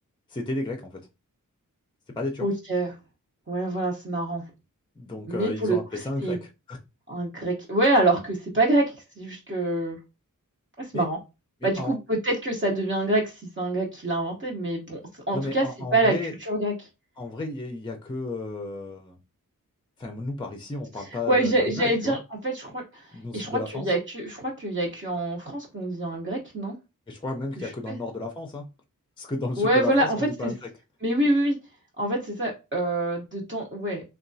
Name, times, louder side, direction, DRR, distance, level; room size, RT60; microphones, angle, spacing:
voice 1, 0.3-1.0 2.2-2.4 5.0-6.8 10.9-11.1 11.6-11.9 15.3-16.3 17.2-19.2 20.0-22.2 23.1-23.9 27.1-28.6 29.2-30.7, left 2 dB, 15° left, 3 dB, 0.5 m, -33 dB
voice 2, 2.4-2.9 3.5-4.4 5.3-6.4 7.1-10.0 10.8-11.2 11.6-15.7 15.9-16.2 16.4-16.9 21.0-26.8 27.6-28.0 29.6-30.5 31.0-31.6 32.0-34.0, right 1 dB, 35° right, -3 dB, 0.7 m, -26 dB
2.9 x 2.2 x 2.6 m, 0.26 s
wide cardioid pair, 70°, 34 cm